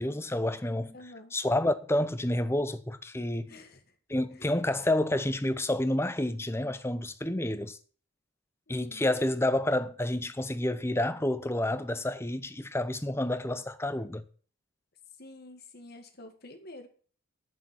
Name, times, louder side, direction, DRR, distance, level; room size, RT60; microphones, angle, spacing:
voice 1, 0.0-1.0 1.3-3.6 4.1-7.8 8.7-14.2, left 1 dB, 10° left, 0.7 m, -29 dB
voice 2, 0.9-1.3 3.5-3.8 4.3-4.5 8.7-9.1 13.0-13.2 15.2-16.9, left 2 dB, 45° left, 1.8 m, -49 dB
8.5 x 7.2 x 8.8 m
head